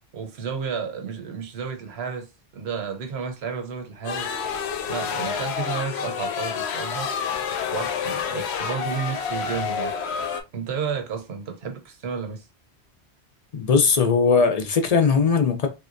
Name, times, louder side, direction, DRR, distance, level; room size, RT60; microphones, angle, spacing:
voice 1, 0.1-4.3 4.9-7.1 7.7-9.9 10.5-12.5, right 6 dB, 75° right, 1.0 m, -32 dB
sound 1, 4.0-10.4, left 6 dB, 80° left, 0.8 m, -28 dB
voice 2, 13.5-15.7, left 5 dB, 45° left, 0.5 m, -19 dB
3.3 x 2.8 x 2.5 m
omnidirectional pair, 1.1 m